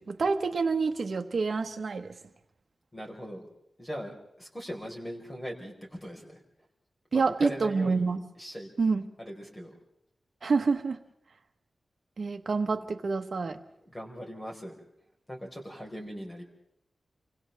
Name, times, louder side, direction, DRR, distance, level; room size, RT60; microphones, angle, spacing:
voice 1, 0.0-2.2 7.1-8.2 8.8-9.1 10.4-11.0 12.2-13.6, right 4 dB, 55° right, 6 dB, 1.4 m, -27 dB
voice 2, 2.9-3.5 3.8-6.4 7.1-8.0 8.4-8.7 9.2-9.7 13.8-14.7 15.3-16.4, equal, 15° left, 0 dB, 4.8 m, -39 dB
29.0 x 25.0 x 3.6 m, 0.77 s
wide cardioid pair, 135°, 0 cm